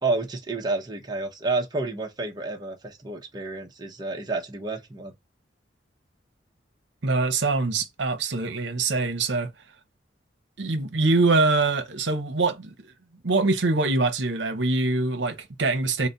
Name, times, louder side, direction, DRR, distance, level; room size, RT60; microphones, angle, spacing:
voice 1, 0.0-5.1, right 3 dB, 25° right, 0.8 m, -30 dB
voice 2, 7.0-9.5 10.6-12.9 13.2-16.1, right 3 dB, 75° right, 0.8 m, -24 dB
4.0 x 2.1 x 3.8 m
head